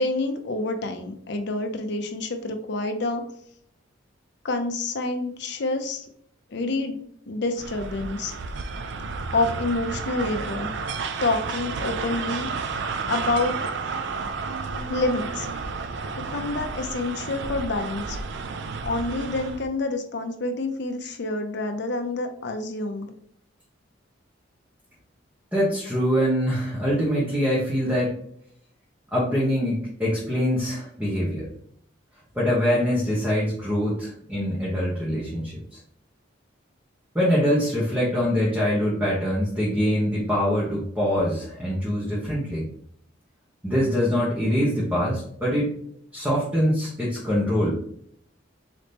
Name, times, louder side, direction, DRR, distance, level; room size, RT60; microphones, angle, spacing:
voice 1, 0.0-3.2 4.4-6.1 6.5-7.0 7.3-8.3 9.3-10.7 11.2-12.5 13.1-13.6 14.9-15.5 16.3-18.2 18.8-23.1, left 2 dB, 60° left, 6 dB, 0.6 m, -27 dB
sound 1, 7.6-19.7, right 4 dB, 60° right, 0.4 m, -31 dB
voice 2, 25.5-28.2 29.1-31.5 32.3-35.8 37.1-42.7 43.6-45.7 46.1-47.7, equal, 10° right, -7 dB, 1.1 m, -24 dB
4.0 x 3.0 x 3.3 m, 0.67 s
head